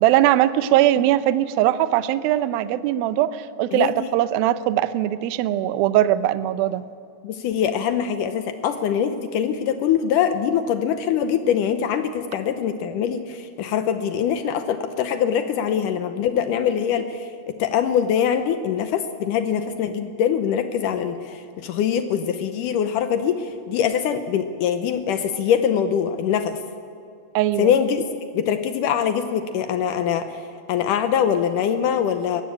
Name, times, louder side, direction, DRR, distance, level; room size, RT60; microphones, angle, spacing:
voice 1, 0.0-6.8 27.4-27.7, right 13 dB, 75° right, 13 dB, 2.3 m, -20 dB
voice 2, 3.7-4.1 7.2-26.5 27.6-28.1 28.3-30.3 30.7-32.4, left 8 dB, 80° left, 9 dB, 1.9 m, -23 dB
21.0 x 16.0 x 8.7 m, 2.5 s
omnidirectional pair, 4.6 m